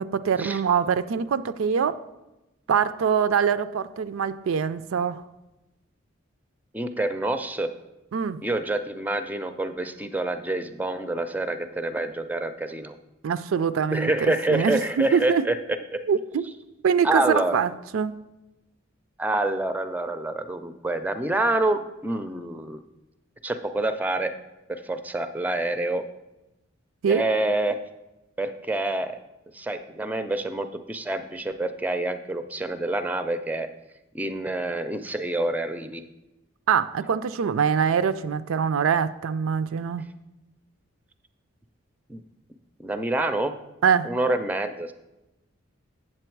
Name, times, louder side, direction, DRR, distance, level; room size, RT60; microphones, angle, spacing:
voice 1, 0.0-2.0 2.7-5.2 8.1-8.4 13.2-15.4 16.1-16.5 16.8-18.2 27.0-27.2 36.7-40.0 43.8-44.1, right 7 dB, 85° right, 14 dB, 0.4 m, -24 dB
voice 2, 6.7-7.7 8.4-13.0 13.9-15.6 15.9-16.0 17.0-17.6 19.2-22.8 23.4-24.3 24.7-26.0 27.1-27.8 28.4-29.2 29.5-33.7 34.1-36.0 42.1-42.2 42.8-43.6 44.0-44.9, right 2 dB, 10° right, 9 dB, 0.4 m, -27 dB
7.7 x 7.6 x 4.6 m, 0.98 s
head